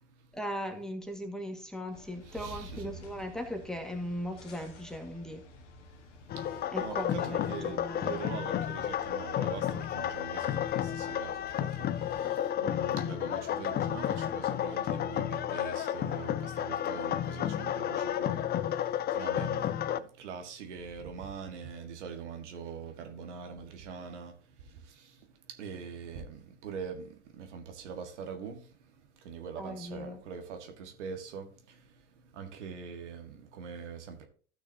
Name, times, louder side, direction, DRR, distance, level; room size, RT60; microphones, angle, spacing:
voice 1, 0.3-5.4 6.7-8.2 29.6-30.2, equal, ahead, 1.9 m, -38 dB
sound 1, 1.9-12.2, left 1 dB, 80° left, 1.6 m, -52 dB
voice 2, 2.3-2.9 6.8-11.3 11.6-11.7 12.6-18.5 19.2-19.6 20.2-24.3 25.6-27.0 27.4-28.6 29.3-31.5 32.4-34.3, right 6 dB, 70° right, 1.8 m, -42 dB
sound 2, 6.3-20.0, left 10 dB, 25° left, 0.6 m, -32 dB
14.5 x 6.4 x 2.8 m
hypercardioid pair, 90°, 36 cm